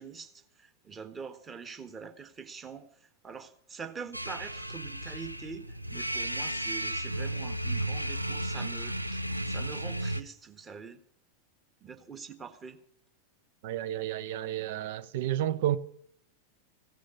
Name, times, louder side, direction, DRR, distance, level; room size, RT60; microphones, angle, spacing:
voice 1, 0.0-11.0 11.8-12.8, right 5 dB, 20° right, 1.5 m, -44 dB
sound 1, 4.1-10.2, right 1 dB, 90° right, 0.5 m, -34 dB
voice 2, 13.6-15.8, right 12 dB, 50° right, 0.8 m, -31 dB
16.0 x 6.2 x 9.7 m
figure-of-eight pair, 90°, 0 cm